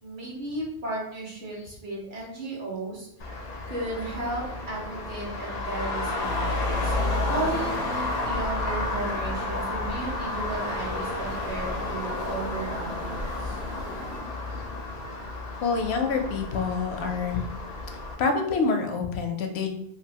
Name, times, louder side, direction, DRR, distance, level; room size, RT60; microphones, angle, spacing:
voice 1, 0.0-3.1 3.7-6.9 7.3-13.6, right 2 dB, 50° right, -5 dB, 1.1 m, -34 dB
Traffic noise roadway noise, 3.2-18.1, left 2 dB, 55° left, 0.5 m, -31 dB
sound 1, 6.2-14.2, equal, 70° right, 1.0 m, -39 dB
voice 2, 15.6-17.4 18.2-19.7, left 4 dB, 80° left, 5 dB, 0.8 m, -26 dB
3.0 x 2.4 x 2.7 m, 0.74 s
omnidirectional pair, 1.1 m